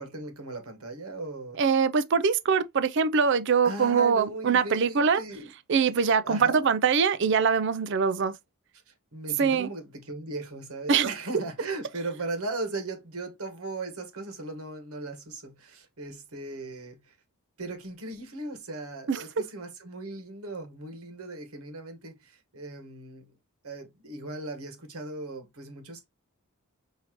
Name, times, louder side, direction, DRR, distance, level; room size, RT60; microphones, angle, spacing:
voice 1, 0.0-1.6 3.6-5.5 5.9-6.7 8.9-17.1 17.6-23.3 23.6-26.0, right 2 dB, 85° right, 1.4 m, -38 dB
voice 2, 1.6-5.2 5.7-8.3 9.4-9.7 10.9-11.1 19.1-19.2, right 6 dB, 55° right, 0.4 m, -23 dB
5.6 x 2.8 x 2.9 m
head